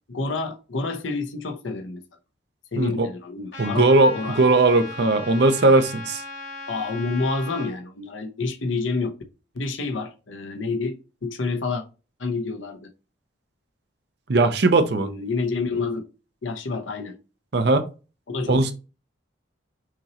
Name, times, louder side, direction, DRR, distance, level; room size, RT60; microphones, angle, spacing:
voice 1, 0.1-2.0 2.7-4.4 6.7-9.1 9.5-11.8 12.2-12.9 15.0-16.1 16.4-17.2 18.3-18.7, left 3 dB, 80° left, 0.9 m, -28 dB
Trumpet, 3.5-7.7, left 3 dB, 65° left, 1.9 m, -38 dB
voice 2, 3.6-6.2 14.3-15.1 17.5-17.9 18.5-18.7, right 2 dB, 60° right, 0.6 m, -19 dB
5.9 x 3.0 x 2.9 m
head